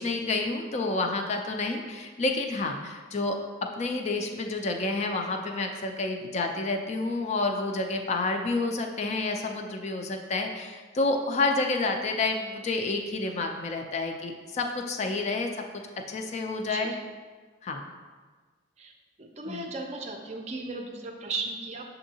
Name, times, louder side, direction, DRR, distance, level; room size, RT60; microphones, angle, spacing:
voice 1, 0.0-3.4 3.8-15.5 16.1-16.9 17.6-17.8 19.5-19.6, left 3 dB, 35° left, 4 dB, 0.3 m, -29 dB
voice 2, 19.2-21.8, right 3 dB, 35° right, 2 dB, 0.4 m, -36 dB
6.6 x 2.6 x 2.8 m, 1.4 s
head